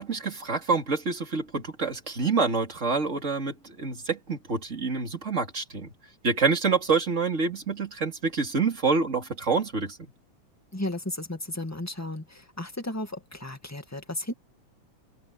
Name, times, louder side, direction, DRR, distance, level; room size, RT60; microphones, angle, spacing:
voice 1, 0.0-5.9 6.2-10.0, right 4 dB, 20° right, 3.3 m, -27 dB
voice 2, 10.7-14.3, left 1 dB, 5° left, 1.5 m, -34 dB
omnidirectional pair, 3.6 m